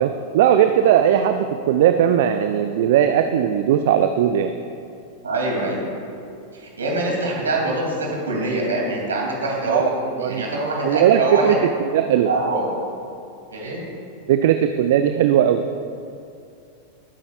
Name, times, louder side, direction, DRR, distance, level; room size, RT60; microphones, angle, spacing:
voice 1, 0.0-4.5 9.7-9.8 10.2-10.4 10.8-11.6 11.9-12.3 14.3-15.6, right 10 dB, 55° right, 8 dB, 0.4 m, -18 dB
voice 2, 5.2-5.8 6.5-9.9 10.2-11.6 12.2-12.7 13.5-13.8, right 2 dB, 70° right, -2 dB, 2.8 m, -24 dB
19.0 x 9.5 x 2.4 m, 2.5 s
figure-of-eight pair, 90°, 0 cm